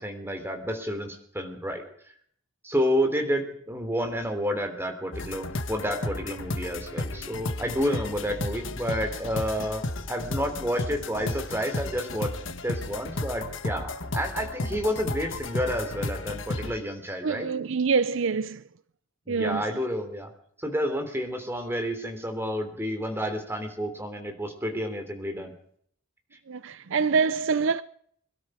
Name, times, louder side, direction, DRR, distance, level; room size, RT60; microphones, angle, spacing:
voice 1, 0.0-1.8 2.6-9.8 10.1-12.3 12.6-17.5 19.3-20.3 20.6-25.5, equal, 10° right, 3.3 m, -30 dB
sound 1, 5.1-16.7, left 2 dB, 65° left, 1.3 m, -33 dB
voice 2, 17.2-18.6 19.3-19.7 26.5-27.8, right 5 dB, 65° right, 0.5 m, -25 dB
23.0 x 12.5 x 5.0 m
head